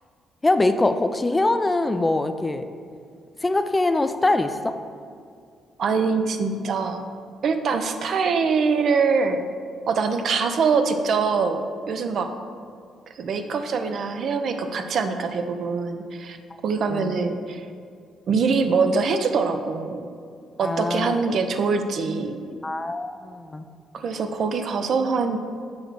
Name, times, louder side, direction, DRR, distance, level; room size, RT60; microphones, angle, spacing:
voice 1, 0.4-2.6 3.4-4.7 16.9-17.2 20.6-21.1 22.6-23.6, left 2 dB, 20° left, 9 dB, 0.4 m, -23 dB
voice 2, 5.8-7.0 7.4-9.4 9.9-12.3 13.2-16.4 16.6-17.7 18.3-20.1 20.6-22.4 23.9-25.4, right 5 dB, 60° right, 7 dB, 0.5 m, -23 dB
7.0 x 3.2 x 6.2 m, 2.2 s
cardioid pair, 90°, 0 cm